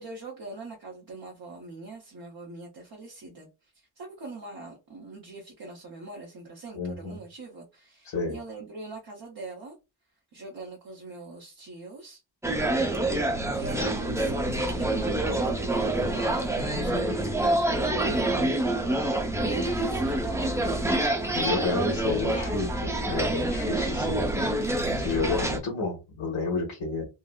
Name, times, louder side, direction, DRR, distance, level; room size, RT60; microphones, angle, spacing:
voice 1, 0.0-3.5 4.0-9.7 10.3-12.2 13.2-17.1 17.4-18.5 19.4-20.8 22.3-22.6, right 3 dB, 50° right, 0.8 m, -42 dB
voice 2, 6.7-7.2 8.0-8.3 17.9-18.0 21.3-22.7 23.0-24.3 25.0-27.0, left 3 dB, 85° left, 1.4 m, -30 dB
sound 1, 12.4-25.6, right 1 dB, 5° right, 0.5 m, -27 dB
3.8 x 2.0 x 2.3 m
wide cardioid pair, 130°, 46 cm